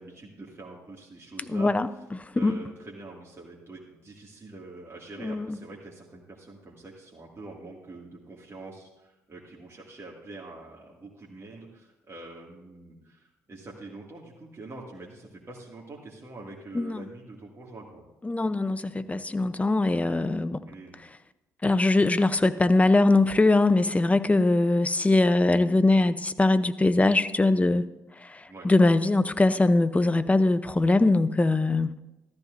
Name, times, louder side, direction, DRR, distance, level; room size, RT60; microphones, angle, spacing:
voice 1, 0.0-1.7 2.3-18.1 20.7-21.0 28.5-28.7, right 2 dB, 35° right, -4 dB, 2.3 m, -45 dB
voice 2, 1.5-2.6 5.2-5.6 16.7-17.0 18.2-20.6 21.6-27.8 28.2-31.9, left 2 dB, 15° left, 13 dB, 0.7 m, -22 dB
14.0 x 13.5 x 2.7 m, 0.98 s
hypercardioid pair, 50°, 8 cm